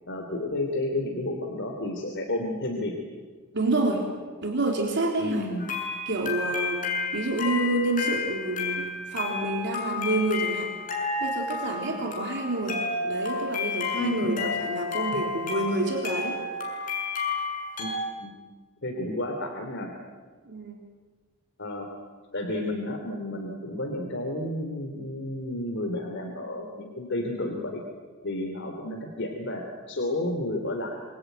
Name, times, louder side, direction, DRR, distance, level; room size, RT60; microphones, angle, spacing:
voice 1, 0.1-2.9 5.2-5.7 14.0-14.4 17.8-18.3 18.8-19.9 21.6-21.9 22.3-27.8 28.2-31.0, left 1 dB, 60° left, 2 dB, 3.3 m, -31 dB
voice 2, 3.5-4.1 4.4-5.5 6.1-6.8 7.1-10.7 11.2-16.4 20.5-20.8, right 2 dB, 55° right, 1 dB, 3.7 m, -28 dB
sound 1, 5.6-18.0, left 4 dB, 40° left, 7.0 m, -31 dB
27.0 x 24.0 x 9.3 m, 1.5 s
head